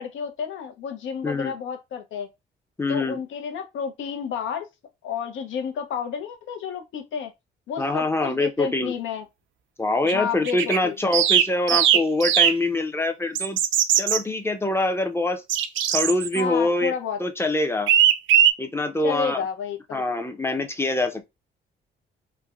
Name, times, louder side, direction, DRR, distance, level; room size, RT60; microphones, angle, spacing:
voice 1, 0.0-2.3 2.9-4.7 5.0-7.3 7.7-9.2 10.0-10.9 16.3-17.2 19.0-20.0, left 7 dB, 75° left, 0.7 m, -31 dB
voice 2, 1.2-1.5 2.8-3.2 7.8-8.9 9.8-13.6 14.0-15.4 15.9-16.9 17.2-17.9 18.6-19.4 19.9-21.3, left 2 dB, 10° left, 0.5 m, -24 dB
sound 1, 10.1-10.2 10.5-10.8 11.1-12.5 13.4-14.2 15.5-16.4 17.9-18.5, right 10 dB, 75° right, 0.4 m, -19 dB
3.2 x 2.1 x 2.4 m
cardioid pair, 90°, 20 cm